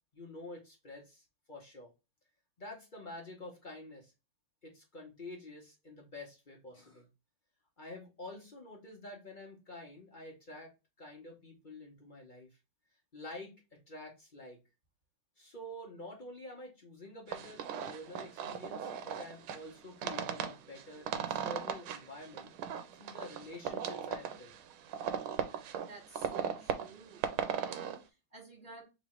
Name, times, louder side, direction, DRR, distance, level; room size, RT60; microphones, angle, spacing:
voice 1, 0.1-1.9 2.6-4.1 4.6-7.1 7.8-10.7 11.0-12.5 13.1-13.5 13.9-14.6 15.4-22.5 23.0-24.5, left 1 dB, 35° left, 0 dB, 0.8 m, -48 dB
sound 1, 17.3-28.0, right 8 dB, 85° right, 1.5 m, -38 dB
voice 2, 25.8-27.3 27.5-28.8, right 3 dB, 30° right, -1 dB, 1.6 m, -53 dB
3.4 x 3.1 x 4.3 m, 0.27 s
omnidirectional pair, 2.3 m